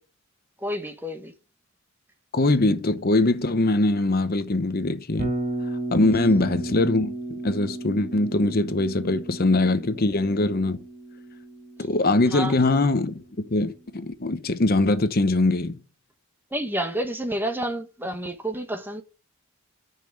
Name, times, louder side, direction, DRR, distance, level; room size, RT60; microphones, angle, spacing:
voice 1, 0.6-1.3 12.3-12.5 16.5-19.0, right 1 dB, 10° right, 1.3 m, -29 dB
voice 2, 2.3-5.3 5.9-7.1 7.4-10.8 11.8-13.2 13.5-15.8, left 2 dB, 45° left, 0.8 m, -22 dB
Bass guitar, 5.2-13.3, right 2 dB, 40° right, 3.9 m, -34 dB
10.5 x 5.7 x 7.7 m
head